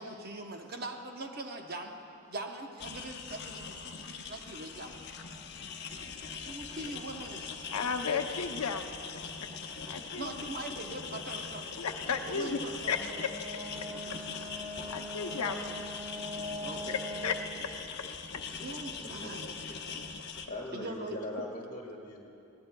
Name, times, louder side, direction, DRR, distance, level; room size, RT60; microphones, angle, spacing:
voice 1, 0.0-2.0 2.3-3.8 4.3-4.9 6.4-7.4 10.1-11.7 12.3-12.9 16.6-17.0 18.6-19.5 19.7-19.8 20.7-21.2, right 2 dB, 45° right, 3 dB, 0.9 m, -41 dB
sound 1, 2.8-20.5, left 5 dB, 50° left, 0.8 m, -42 dB
voice 2, 7.7-8.8 9.6-10.3 11.8-13.3 14.9-15.7 16.9-17.4 17.6-17.7, left 6 dB, 85° left, 6 dB, 0.7 m, -34 dB
Brass instrument, 12.9-17.4, equal, 25° right, 3.6 m, -42 dB
voice 3, 19.0-22.3, left 1 dB, 35° left, 0 dB, 1.7 m, -42 dB
20.5 x 17.0 x 2.3 m, 2.7 s
head